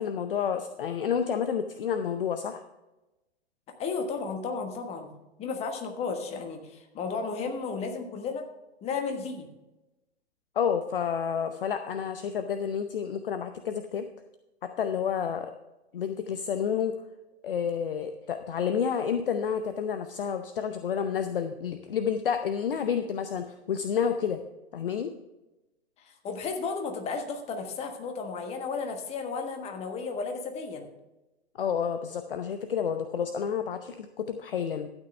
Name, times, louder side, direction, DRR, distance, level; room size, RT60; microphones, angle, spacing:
voice 1, 0.0-2.6 10.6-14.1 14.6-15.5 15.9-16.9 17.4-24.4 24.7-25.1 31.6-34.9, left 7 dB, 55° left, 8 dB, 0.7 m, -30 dB
voice 2, 3.8-5.1 5.4-8.4 8.8-9.5 26.0-30.9, left 4 dB, 20° left, 5 dB, 1.3 m, -33 dB
12.5 x 9.0 x 3.3 m, 1.0 s
figure-of-eight pair, 110°, 32 cm